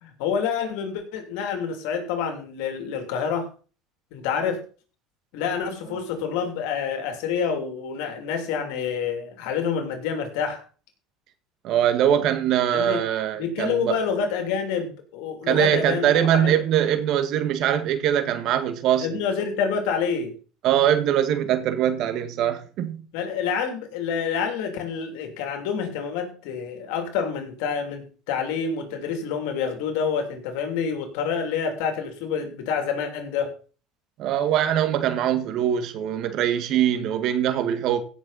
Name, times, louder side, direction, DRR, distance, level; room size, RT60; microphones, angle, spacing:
voice 1, 0.0-3.5 4.1-4.6 5.3-10.6 12.7-13.0 13.4-16.1 16.3-16.6 19.0-20.4 23.1-33.5, left 6 dB, 80° left, 2.9 m, -27 dB
voice 2, 11.6-14.0 15.5-19.2 20.6-23.0 34.2-38.0, right 10 dB, 60° right, 1.7 m, -22 dB
16.5 x 6.6 x 4.1 m
supercardioid pair, 110°, 0 cm